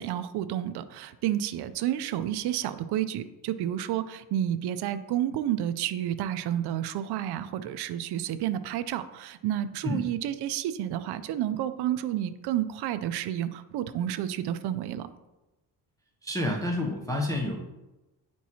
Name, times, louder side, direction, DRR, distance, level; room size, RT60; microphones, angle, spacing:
voice 1, 0.0-15.1, right 11 dB, 60° right, 11 dB, 0.5 m, -30 dB
voice 2, 16.2-17.6, left 1 dB, 10° left, -2 dB, 0.5 m, -29 dB
9.1 x 4.6 x 2.8 m, 1.0 s
cardioid pair, 150°, 44 cm